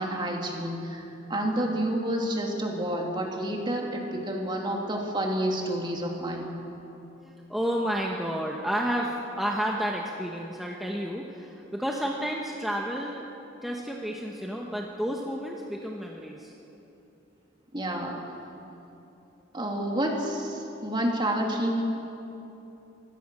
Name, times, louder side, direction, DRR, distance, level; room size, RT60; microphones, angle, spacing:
voice 1, 0.0-6.5 17.7-18.2 19.5-21.8, right 1 dB, 25° right, 0 dB, 2.7 m, -29 dB
voice 2, 7.2-13.3 13.6-16.5, equal, ahead, -2 dB, 1.2 m, -31 dB
25.0 x 16.5 x 6.3 m, 2.9 s
head